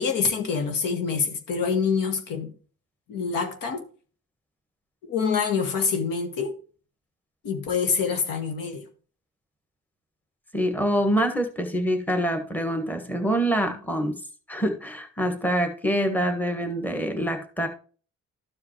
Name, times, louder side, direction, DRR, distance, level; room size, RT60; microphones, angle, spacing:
voice 1, 0.0-2.5 3.1-3.8 5.0-6.5 7.4-8.8, left 5 dB, 80° left, 1.8 m, -26 dB
voice 2, 10.5-14.1 14.5-17.7, equal, 5° left, 1.4 m, -25 dB
13.0 x 4.9 x 3.0 m
cardioid pair, 105°, 33 cm